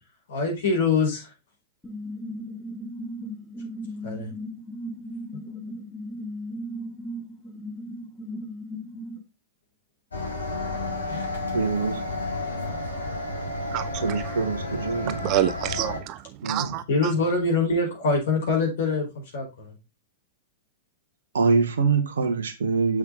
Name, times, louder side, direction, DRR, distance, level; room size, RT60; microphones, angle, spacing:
voice 1, 0.3-1.3 4.0-4.3 11.1-11.2 16.9-19.8, left 3 dB, 55° left, 4.8 m, -24 dB
sound 1, 1.8-9.2, equal, 5° left, 2.3 m, -36 dB
sound 2, 10.1-16.0, left 2 dB, 75° left, 2.6 m, -31 dB
voice 2, 11.5-12.0 14.0-15.2 16.4-16.8 21.3-23.0, right 4 dB, 65° right, 1.5 m, -24 dB
voice 3, 13.7-14.3 15.2-17.1, right 12 dB, 35° right, 0.7 m, -28 dB
7.9 x 6.3 x 3.7 m
figure-of-eight pair, 100°, 0 cm